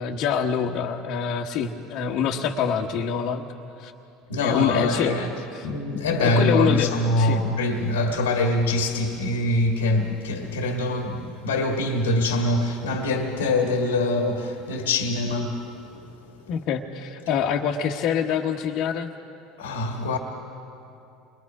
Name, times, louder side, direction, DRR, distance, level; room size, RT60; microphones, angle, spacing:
voice 1, 0.0-3.5 3.8-3.9 4.4-5.2 5.5-5.7 6.2-7.5 16.5-19.1, left 7 dB, 60° left, 1.3 m, -25 dB
voice 2, 4.3-5.3 5.6-15.6 15.9-16.0 19.6-20.2, left 2 dB, 90° left, 1.7 m, -24 dB
28.0 x 22.0 x 4.9 m
hypercardioid pair, 80°, 0 cm